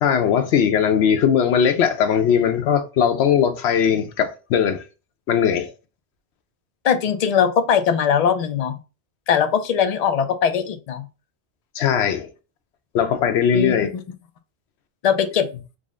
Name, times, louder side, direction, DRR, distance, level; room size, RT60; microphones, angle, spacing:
voice 1, 0.0-4.8 5.3-5.7 11.7-12.3 12.9-13.9, left 8 dB, 80° left, 0.9 m, -19 dB
voice 2, 6.8-8.7 9.3-11.1 13.5-13.7 15.0-15.5, left 7 dB, 55° left, 0.4 m, -20 dB
3.7 x 2.1 x 3.5 m
omnidirectional pair, 1.1 m